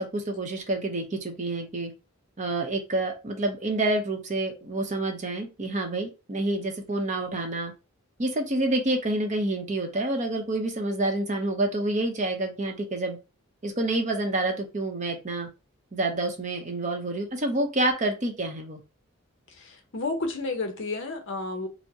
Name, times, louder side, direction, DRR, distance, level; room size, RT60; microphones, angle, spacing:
voice 1, 0.0-1.9 2.4-7.7 8.2-13.2 13.6-15.5 15.9-18.8, right 2 dB, 35° right, 0.7 m, -28 dB
voice 2, 19.5-21.7, left 3 dB, 60° left, 0.7 m, -31 dB
4.4 x 2.0 x 2.7 m
head